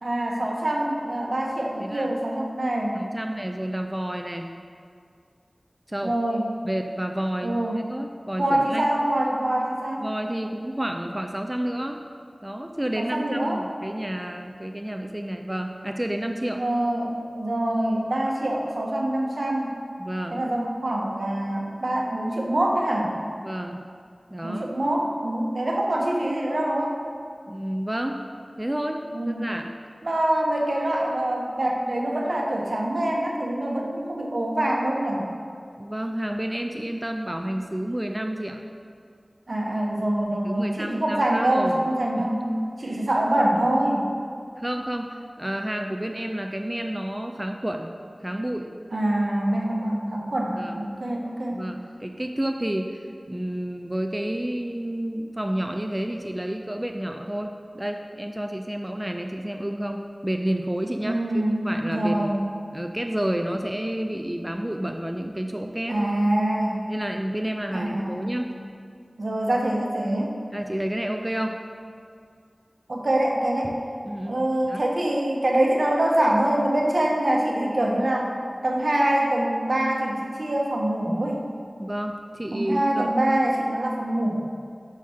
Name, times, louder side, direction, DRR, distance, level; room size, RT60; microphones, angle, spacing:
voice 1, 0.0-3.1 6.0-6.4 7.4-7.8 8.4-10.1 13.0-13.6 16.5-19.7 20.3-23.2 24.4-27.0 29.1-29.5 30.0-35.3 39.5-42.4 42.8-44.2 48.9-51.6 61.0-62.5 65.9-66.9 67.7-68.4 69.2-70.3 72.9-73.7 74.3-78.3 78.6-81.4 82.5-84.4, right 1 dB, 70° right, -1 dB, 0.9 m, -25 dB
voice 2, 1.8-2.1 2.9-4.5 5.9-6.2 6.6-8.9 10.0-12.0 12.4-16.6 20.0-20.5 23.4-23.9 24.3-24.7 27.5-28.2 28.6-29.7 35.8-38.6 40.3-41.8 42.2-43.1 44.6-47.9 48.2-48.7 50.6-50.9 51.5-53.0 53.3-62.4 62.7-66.1 66.9-68.6 70.5-71.6 74.1-74.8 81.8-83.1, right 1 dB, 20° right, 4 dB, 0.3 m, -30 dB
5.6 x 5.6 x 4.8 m, 2.2 s
wide cardioid pair, 55°, 0 cm